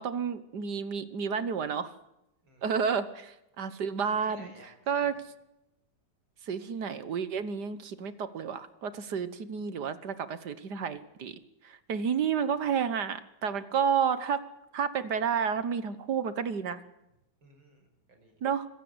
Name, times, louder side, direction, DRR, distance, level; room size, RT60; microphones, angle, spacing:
voice 1, 0.0-1.9 2.6-4.5 4.9-5.2 6.5-11.4 11.6-14.4 14.7-16.8 18.4-18.7, right 7 dB, 60° right, 13 dB, 1.7 m, -31 dB
voice 2, 2.4-2.8 4.1-5.2 12.6-12.7 17.4-18.4, right 1 dB, 75° right, 5 dB, 6.2 m, -56 dB
25.5 x 16.0 x 8.0 m, 0.90 s
omnidirectional pair, 2.2 m